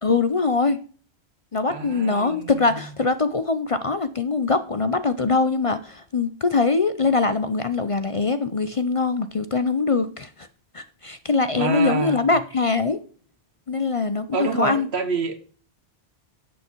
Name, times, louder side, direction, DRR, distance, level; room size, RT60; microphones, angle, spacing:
voice 1, 0.0-0.8 1.5-10.5 10.7-13.0 13.7-14.9, left 4 dB, 40° left, 12 dB, 0.6 m, -23 dB
voice 2, 1.7-2.8 11.5-12.3 14.3-15.4, right 4 dB, 80° right, 9 dB, 1.6 m, -27 dB
10.0 x 8.2 x 4.5 m, 0.41 s
omnidirectional pair, 1.1 m